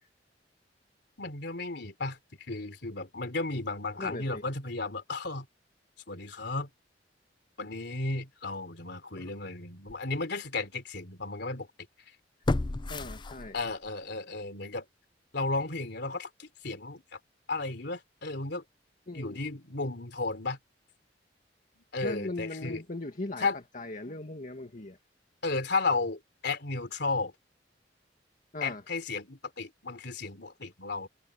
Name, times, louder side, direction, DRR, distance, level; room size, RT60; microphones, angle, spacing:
voice 1, 1.2-2.2 2.5-5.5 6.1-6.7 7.6-11.7 13.5-14.8 15.3-17.2 17.5-18.6 19.1-20.6 21.8-22.8 23.4-23.6 25.4-27.3 28.6-31.1, left 3 dB, 65° left, 3.5 m, -34 dB
voice 2, 4.0-4.4 12.9-13.6 19.1-19.4 22.0-23.5 23.7-25.0 28.5-28.8, left 2 dB, 45° left, 2.0 m, -38 dB
sound 1, 9.2-9.3 9.9-10.0 12.4-13.9 14.3-14.4, left 2 dB, 25° left, 0.5 m, -32 dB
head